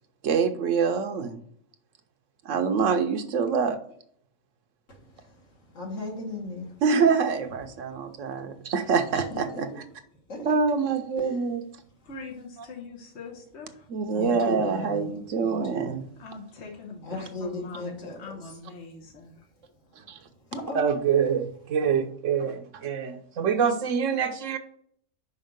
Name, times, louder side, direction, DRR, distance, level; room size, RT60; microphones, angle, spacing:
voice 1, 0.2-1.4 2.4-3.8 6.8-9.7 10.4-11.6 13.9-16.0 20.1-20.2 20.7-24.6, right 6 dB, 85° right, 7 dB, 1.2 m, -25 dB
voice 2, 4.9-6.8 9.1-9.8 10.3-10.6 11.2-11.4 14.2-15.1 15.4-15.9 17.0-18.2 20.5-20.8, left 2 dB, 90° left, 0 dB, 2.1 m, -37 dB
voice 3, 12.0-13.9 16.2-19.5, left 4 dB, 65° left, -1 dB, 1.4 m, -42 dB
5.5 x 5.2 x 6.5 m, 0.66 s
omnidirectional pair, 1.3 m